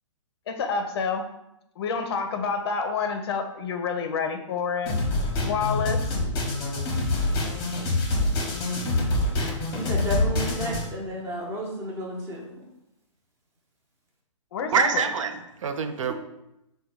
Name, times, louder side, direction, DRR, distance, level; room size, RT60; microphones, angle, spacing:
voice 1, 0.5-1.2 1.8-5.0 5.4-6.0 14.5-15.0, left 5 dB, 50° left, 6 dB, 0.5 m, -28 dB
sound 1, 4.9-10.9, left 2 dB, 20° left, 0.9 m, -26 dB
voice 2, 9.7-12.5 16.1-16.2, equal, 15° right, -2 dB, 0.8 m, -32 dB
voice 3, 14.7-16.1, right 6 dB, 75° right, 7 dB, 0.5 m, -25 dB
3.9 x 2.2 x 4.5 m, 0.86 s
hypercardioid pair, 145°, 17 cm